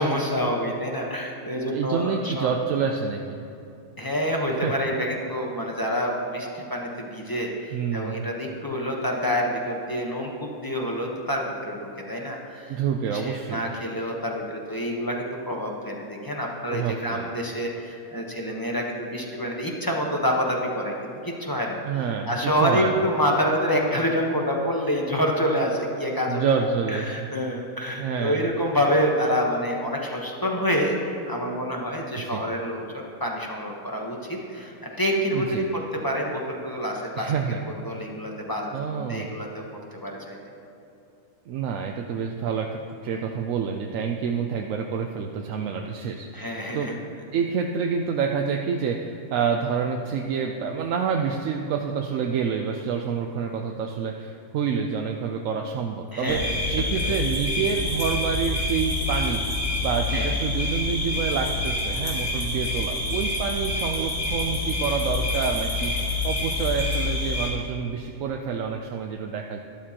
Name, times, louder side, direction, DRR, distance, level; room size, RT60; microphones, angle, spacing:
voice 1, 0.0-2.5 4.0-12.8 13.1-21.8 22.2-26.4 26.9-32.8 33.2-37.3 37.6-39.6 39.9-40.4 46.3-46.9 56.1-56.4 56.9-57.1 60.1-60.3, equal, 15° left, -1 dB, 0.9 m, -27 dB
voice 2, 1.7-3.4 4.5-4.7 7.7-8.3 12.7-13.6 16.7-17.3 21.8-23.0 26.3-27.3 28.0-28.5 32.2-32.4 35.3-35.6 37.2-37.6 38.7-39.3 41.5-46.9 47.3-59.5 59.8-69.6, right 6 dB, 70° right, 3 dB, 0.9 m, -28 dB
sound 1, 56.3-67.5, left 2 dB, 40° left, 2.3 m, -27 dB
12.5 x 12.0 x 2.9 m, 2.7 s
omnidirectional pair, 1.6 m